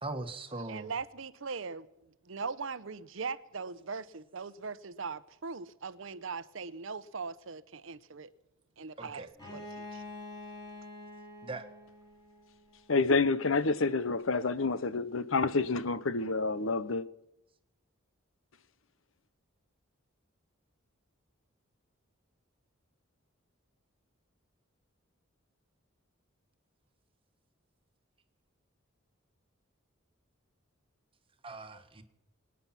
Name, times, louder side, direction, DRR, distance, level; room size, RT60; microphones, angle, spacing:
voice 1, 0.0-0.9 9.0-9.3 11.4-11.7 31.4-32.0, right 2 dB, 25° right, 1.5 m, -40 dB
voice 2, 0.6-1.9 2.2-8.3 8.8-10.0, right 5 dB, 65° right, 0.8 m, -40 dB
Bowed string instrument, 9.4-13.1, left 2 dB, 20° left, 5.6 m, -47 dB
voice 3, 12.9-17.0, left 3 dB, 70° left, 0.9 m, -28 dB
24.5 x 9.7 x 5.9 m
head